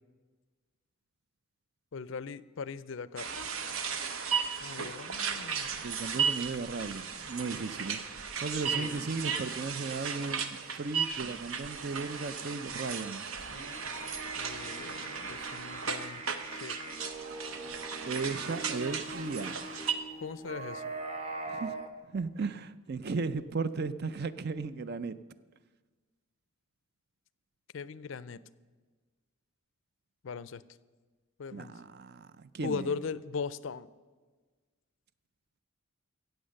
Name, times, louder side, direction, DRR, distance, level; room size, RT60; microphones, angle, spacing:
voice 1, 1.9-3.3 4.6-5.9 8.8-9.0 14.4-16.8 20.2-20.9 27.7-28.4 30.2-30.6 31.4-31.7 32.6-33.9, left 5 dB, 60° left, 17 dB, 0.4 m, -39 dB
sound 1, 3.2-19.9, right 6 dB, 75° right, 0.9 m, -36 dB
voice 2, 5.8-8.0 8.4-13.3 18.1-19.6 21.5-21.7 22.1-25.2 31.5-33.0, right 4 dB, 50° right, 13 dB, 0.5 m, -36 dB
sound 2, 13.4-21.9, right 2 dB, 30° right, 1.1 m, -42 dB
15.5 x 8.1 x 6.4 m, 1.4 s
head